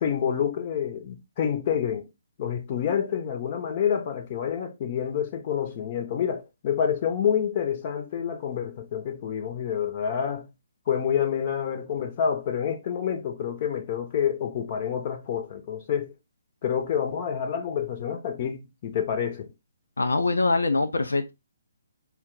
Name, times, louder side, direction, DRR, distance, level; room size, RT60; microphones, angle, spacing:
voice 1, 0.0-2.1 2.4-10.5 10.9-16.1 16.6-19.5, left 8 dB, 35° left, 0.9 m, -28 dB
voice 2, 20.0-21.3, left 3 dB, 70° left, 0.5 m, -23 dB
4.4 x 2.3 x 3.7 m
figure-of-eight pair, 135°, 0 cm